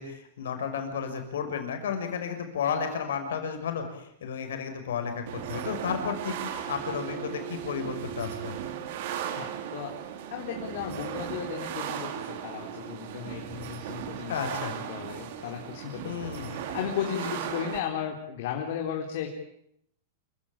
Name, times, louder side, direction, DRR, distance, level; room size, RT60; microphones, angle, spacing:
voice 1, 0.0-8.6 14.3-14.7 16.0-16.5, left 7 dB, 85° left, 6 dB, 6.1 m, -33 dB
sound 1, 5.3-17.8, right 10 dB, 60° right, 3.3 m, -37 dB
voice 2, 9.4-9.9 10.3-19.4, left 9 dB, 60° left, 1 dB, 4.1 m, -35 dB
27.5 x 17.0 x 8.7 m, 0.71 s
supercardioid pair, 145°, 0 cm